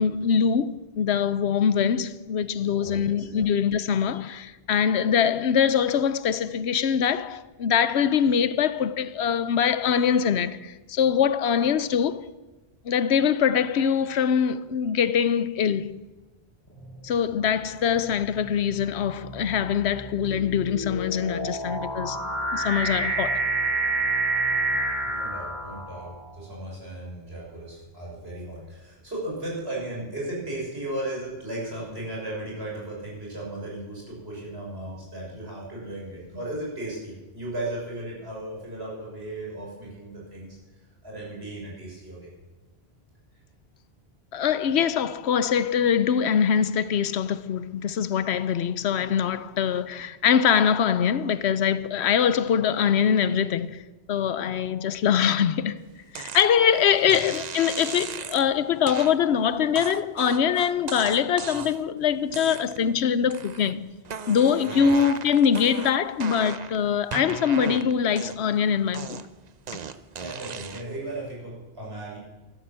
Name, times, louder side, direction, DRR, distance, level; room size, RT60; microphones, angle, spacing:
voice 1, 0.0-12.2 12.8-16.0 17.0-22.2 22.5-23.5 44.3-53.8 54.1-55.8 56.1-63.9 64.3-69.2, left 7 dB, 85° left, 1.0 m, -23 dB
voice 2, 2.7-3.4 25.0-40.6 41.0-42.3 57.0-57.2 64.6-64.9 70.2-72.2, right 1 dB, 70° right, 6.7 m, -36 dB
sound 1, 16.8-17.2 18.0-26.2, right 2 dB, 20° left, 4.7 m, -28 dB
sound 2, 56.1-56.5 57.1-58.5 58.9-59.1 59.7-61.9 62.3-62.9 63.3-63.7 64.0-66.8 67.1-68.6 68.9-71.0, right 6 dB, 45° right, 0.7 m, -37 dB
14.5 x 12.5 x 7.5 m
omnidirectional pair, 1.1 m